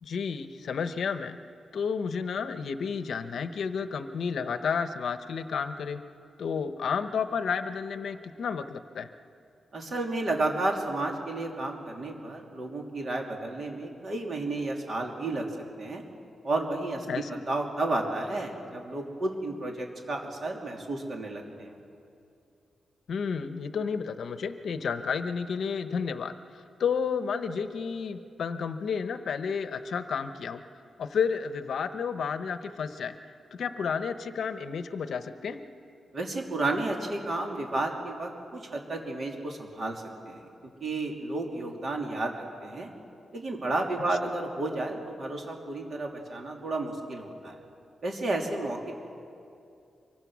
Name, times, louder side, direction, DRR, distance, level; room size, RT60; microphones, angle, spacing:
voice 1, 0.0-1.4 1.7-6.0 6.4-9.1 17.1-17.4 23.1-26.3 26.8-30.6 31.0-33.1 33.5-35.6, left 6 dB, 65° left, 10 dB, 0.9 m, -31 dB
voice 2, 9.7-15.5 15.8-16.0 16.4-21.8 36.1-40.5 40.8-42.9 43.3-47.6 48.0-48.9, right 2 dB, 45° right, 1 dB, 2.9 m, -32 dB
25.0 x 23.0 x 6.3 m, 2.5 s
wide cardioid pair, 160°, 0 cm